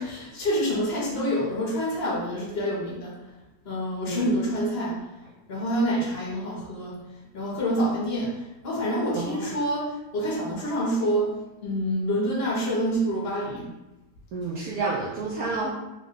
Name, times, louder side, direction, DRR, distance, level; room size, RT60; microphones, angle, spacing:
voice 1, 0.0-3.1 3.7-5.0 5.5-7.0 7.3-11.4 11.6-13.7, equal, 45° left, -4 dB, 1.0 m, -27 dB
voice 2, 9.1-9.5 14.3-15.7, right 3 dB, 70° right, -5 dB, 1.0 m, -30 dB
3.5 x 2.3 x 3.6 m, 0.99 s
omnidirectional pair, 1.7 m